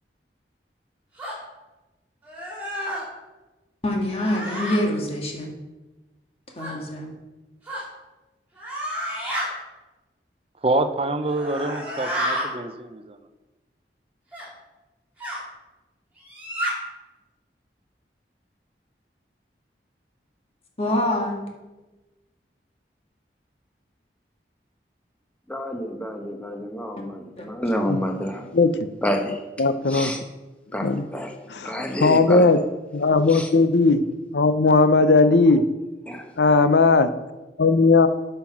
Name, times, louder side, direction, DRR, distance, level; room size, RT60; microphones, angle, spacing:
sound 1, 1.2-1.4 2.2-3.0 4.1-4.8 6.6-6.7 7.7-7.8 8.6-9.5 11.2-12.5 14.3-14.5 15.2-15.4 16.2-16.7, equal, 10° right, 3.2 m, -30 dB
voice 1, 3.8-5.5 6.6-7.1 20.8-21.4 27.4-27.5, left 1 dB, 35° left, 1.7 m, -25 dB
voice 2, 10.6-13.2, right 2 dB, 30° right, 0.6 m, -26 dB
voice 3, 25.5-28.6 29.0-29.4 29.9-30.2 30.7-31.3 31.6-32.6 33.3-33.5 36.1-36.3, equal, 5° left, 1.0 m, -29 dB
voice 4, 29.6-30.1 30.8-31.0 31.5-31.8 32.0-32.6 32.9-34.0 34.3-35.6 36.4-37.1 37.6-38.1, left 3 dB, 80° left, 0.6 m, -17 dB
8.7 x 5.7 x 6.0 m
head